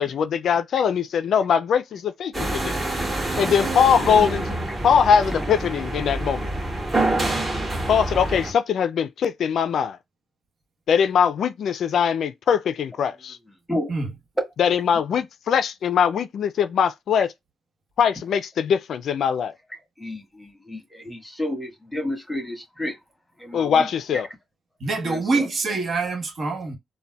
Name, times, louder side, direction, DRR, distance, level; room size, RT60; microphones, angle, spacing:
voice 1, 0.0-2.7 3.4-4.5 4.8-6.5 7.9-10.0 10.9-13.4 14.6-17.3 18.0-19.5 23.5-24.3, left 7 dB, 65° left, 0.3 m, -21 dB
lift relais, 2.3-8.5, right 2 dB, 25° right, 1.9 m, -26 dB
voice 2, 20.0-23.0 23.4-23.9 25.0-25.5, left 1 dB, 5° left, 1.6 m, -31 dB
voice 3, 24.8-26.8, right 3 dB, 50° right, 1.2 m, -26 dB
3.9 x 2.1 x 2.3 m
cardioid pair, 90°, 0 cm